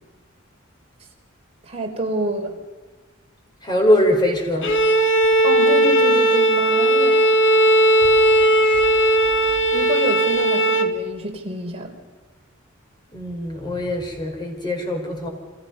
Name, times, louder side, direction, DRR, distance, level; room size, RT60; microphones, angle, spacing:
voice 1, 1.6-2.5 5.4-7.2 9.7-11.9, right 1 dB, 30° right, 1 dB, 4.0 m, -28 dB
voice 2, 3.6-4.7 13.1-15.3, left 1 dB, 20° left, 2 dB, 5.1 m, -22 dB
Bowed string instrument, 4.6-11.0, right 1 dB, 60° left, 1.7 m, -17 dB
29.0 x 26.5 x 5.6 m, 1.3 s
head